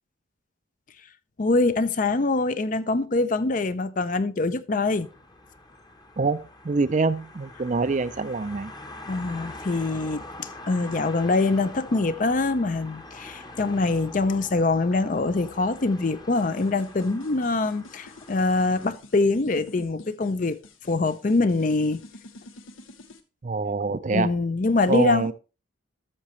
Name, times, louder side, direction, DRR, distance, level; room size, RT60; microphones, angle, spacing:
voice 1, 1.4-5.1 9.1-20.6 20.9-22.0 24.1-25.3, left 3 dB, 40° left, 0.5 m, -24 dB
sound 1, 4.9-18.9, left 2 dB, 20° left, 0.9 m, -44 dB
voice 2, 6.2-8.7 23.4-24.3 24.9-25.3, right 3 dB, 35° right, 0.4 m, -25 dB
sound 2, 16.3-23.2, left 2 dB, 90° left, 1.0 m, -46 dB
13.5 x 6.5 x 3.1 m
head